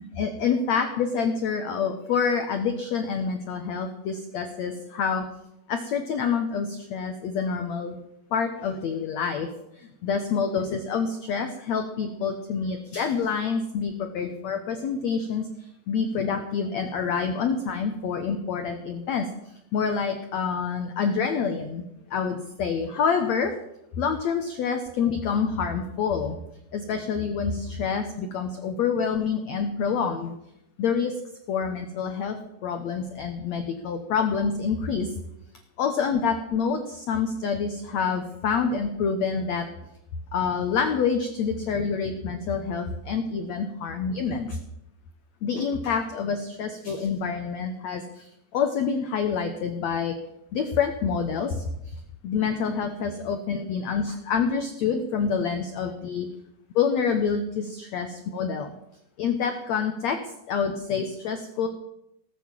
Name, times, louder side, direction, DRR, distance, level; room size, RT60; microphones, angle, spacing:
voice 1, 0.0-5.2 5.7-7.9 8.3-9.5 10.0-15.5 15.9-19.3 19.7-21.8 22.1-23.5 24.0-26.4 26.7-30.3 30.8-31.2 31.5-32.4 32.6-35.1 35.8-39.7 40.3-44.6 45.4-48.2 48.5-50.1 50.5-51.6 52.2-56.3 56.7-58.7 59.2-60.2 60.5-61.7, left 6 dB, 80° left, 7 dB, 1.5 m, -27 dB
18.5 x 8.3 x 7.4 m, 0.84 s
omnidirectional pair, 4.6 m